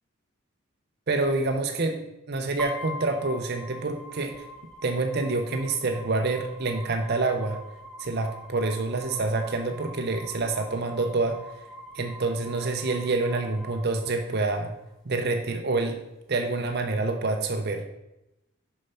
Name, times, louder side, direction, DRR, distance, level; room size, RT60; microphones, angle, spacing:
voice 1, 1.1-2.0 2.3-4.4 4.8-7.6 8.0-11.4 11.9-14.7 15.1-16.0 16.3-17.8, right 3 dB, 45° right, 5 dB, 0.6 m, -27 dB
sound 1, 2.6-14.6, left 1 dB, 5° left, 1.0 m, -44 dB
6.6 x 5.6 x 5.5 m, 0.91 s
head